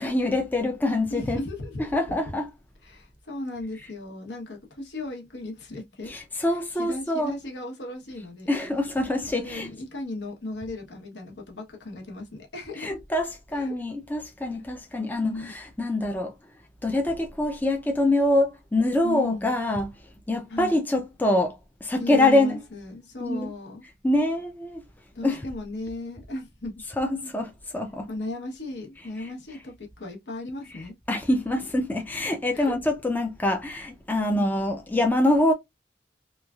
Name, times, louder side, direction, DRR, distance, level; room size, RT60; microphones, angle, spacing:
voice 1, 0.0-1.4 1.8-2.5 6.1-7.3 8.5-9.7 12.8-16.3 16.8-19.9 20.3-21.5 21.8-22.6 23.2-23.5 24.0-24.8 25.2-25.4 27.0-28.1 29.2-29.3 31.1-35.5, left 1 dB, 10° left, 0.4 m, -25 dB
voice 2, 1.1-2.2 2.8-6.1 6.4-8.6 9.3-13.0 13.5-13.7 15.2-15.5 19.0-19.5 20.5-20.8 22.0-23.8 25.1-26.8 28.1-30.9 32.5-32.7 34.3-34.6, left 2 dB, 70° left, 1.0 m, -36 dB
3.1 x 2.3 x 2.3 m
head